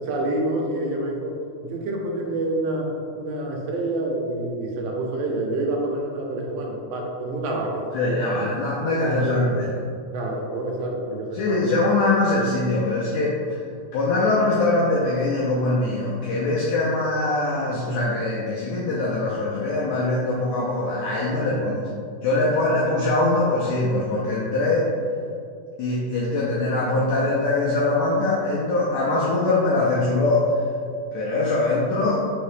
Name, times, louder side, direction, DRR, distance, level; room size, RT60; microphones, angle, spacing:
voice 1, 0.0-1.4 1.6-2.9 3.2-8.2 8.8-9.5 10.1-11.8 21.3-21.6, right 2 dB, 85° right, 0 dB, 2.3 m, -28 dB
voice 2, 7.9-9.7 11.3-13.6 13.9-21.9 22.2-24.9 25.8-30.4 31.1-32.2, left 2 dB, 85° left, -6 dB, 1.5 m, -22 dB
5.4 x 2.8 x 3.1 m, 2.3 s
omnidirectional pair, 3.8 m